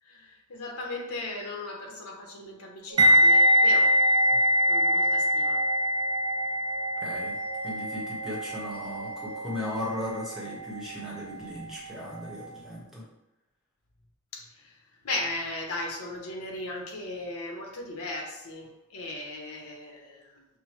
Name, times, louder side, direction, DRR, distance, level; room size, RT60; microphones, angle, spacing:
voice 1, 0.0-4.0 4.7-5.7 14.3-20.5, left 2 dB, 85° left, 0 dB, 1.0 m, -37 dB
sound 1, 2.9-11.6, right 5 dB, 70° right, 1.4 m, -44 dB
sound 2, 3.0-11.9 12.2-12.5, equal, 20° right, 0.3 m, -24 dB
voice 2, 7.0-7.3 7.6-13.0, left 1 dB, ahead, -5 dB, 0.9 m, -37 dB
5.9 x 2.1 x 3.0 m, 1.0 s
head